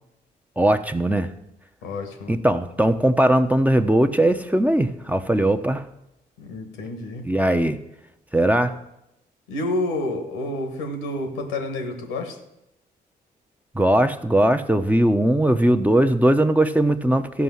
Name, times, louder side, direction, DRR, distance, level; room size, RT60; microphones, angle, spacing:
voice 1, 0.6-1.3 2.3-5.8 7.2-7.8 8.3-8.8 13.7-17.4, right 1 dB, 5° right, 7 dB, 0.9 m, -19 dB
voice 2, 1.8-2.3 6.4-7.2 9.5-12.3, left 1 dB, 85° left, 6 dB, 1.5 m, -29 dB
14.0 x 5.5 x 7.1 m, 0.86 s
hypercardioid pair, 40°, 21 cm